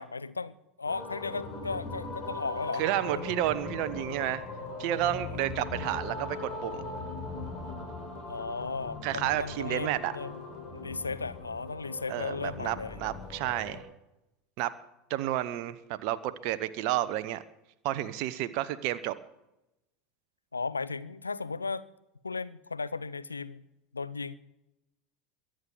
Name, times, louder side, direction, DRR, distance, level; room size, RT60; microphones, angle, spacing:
voice 1, 0.0-3.2 5.2-5.4 8.3-10.4 10.7-13.0 20.5-21.9 22.2-23.6 23.9-24.4, left 4 dB, 80° left, 15 dB, 0.6 m, -36 dB
sound 1, 0.8-13.8, left 3 dB, 40° left, 5.0 m, -40 dB
voice 2, 2.8-4.4 4.8-6.9 9.0-10.1 12.1-13.8 14.6-14.7 15.1-17.4 17.8-19.1, right 13 dB, 50° right, 13 dB, 0.9 m, -31 dB
22.0 x 7.7 x 7.1 m, 0.91 s
figure-of-eight pair, 75°, 0 cm